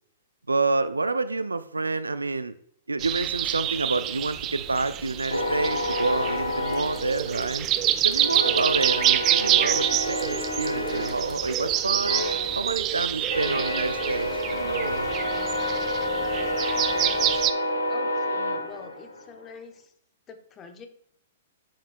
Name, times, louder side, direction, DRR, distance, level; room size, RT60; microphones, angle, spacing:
voice 1, 0.5-2.5 2.9-7.7 8.0-12.2 12.5-15.1, right 3 dB, 90° right, 13 dB, 0.5 m, -28 dB
sound 1, 3.0-17.5, right 12 dB, 30° right, 0.4 m, -27 dB
sound 2, 5.3-7.8 8.1-19.4, left 1 dB, 90° left, 1.1 m, -29 dB
sound 3, 6.7-12.8, right 1 dB, ahead, 1.7 m, -51 dB
voice 2, 17.9-19.8 20.3-20.9, left 5 dB, 25° left, 6 dB, 1.0 m, -45 dB
10.5 x 5.0 x 2.3 m, 0.67 s
figure-of-eight pair, 115°, 0 cm